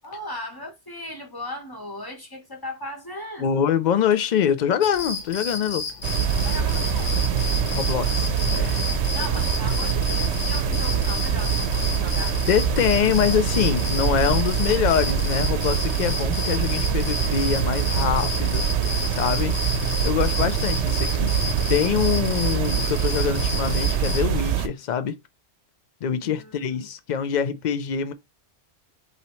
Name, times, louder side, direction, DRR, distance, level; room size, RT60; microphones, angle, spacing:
voice 1, 0.0-3.7 6.4-7.1 9.1-12.4 26.2-26.9, left 1 dB, 20° left, 1.1 m, -37 dB
voice 2, 3.4-5.9 7.7-8.8 12.5-18.7 19.1-19.5 20.0-25.2 26.0-28.1, left 8 dB, 60° left, 0.5 m, -24 dB
sound 1, 4.8-24.2, left 4 dB, 45° left, 1.0 m, -32 dB
sound 2, 6.0-24.7, right 7 dB, 75° right, 0.9 m, -24 dB
5.6 x 2.8 x 3.1 m
omnidirectional pair, 1.2 m